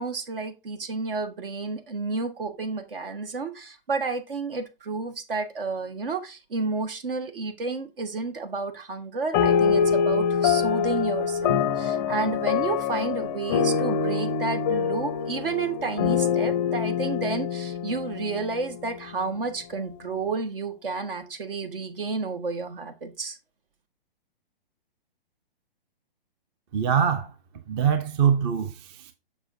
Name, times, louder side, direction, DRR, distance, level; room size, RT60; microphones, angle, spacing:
voice 1, 0.0-23.4, right 4 dB, 65° right, 1.4 m, -31 dB
sound 1, 9.3-19.1, left 7 dB, 25° left, 0.5 m, -25 dB
voice 2, 26.7-27.3 27.7-29.1, right 7 dB, 25° right, 0.5 m, -23 dB
6.9 x 5.7 x 2.6 m
figure-of-eight pair, 130°, 29 cm